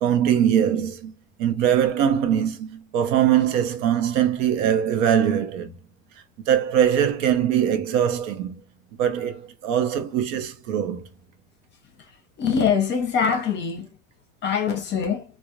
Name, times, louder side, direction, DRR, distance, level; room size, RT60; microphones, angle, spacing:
voice 1, 0.0-1.1 1.4-5.7 6.4-8.6 9.0-11.1, right 9 dB, 70° right, 0.7 m, -22 dB
voice 2, 12.4-13.9 14.4-15.2, left 6 dB, 30° left, 0.6 m, -23 dB
2.4 x 2.0 x 2.8 m
supercardioid pair, 140°, 39 cm